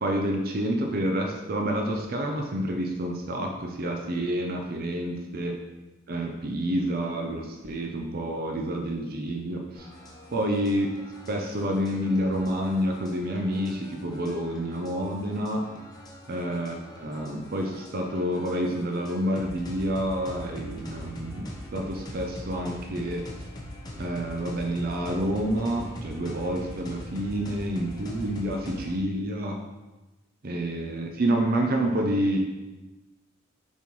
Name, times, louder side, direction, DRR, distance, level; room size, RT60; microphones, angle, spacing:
voice 1, 0.0-5.6 6.1-9.9 10.3-10.9 11.3-15.7 16.3-23.2 24.0-29.6 30.4-32.4, right 1 dB, 50° right, 2 dB, 0.6 m, -28 dB
sound 1, 9.8-29.0, equal, 20° left, 0.9 m, -42 dB
6.9 x 4.3 x 3.2 m, 1.1 s
head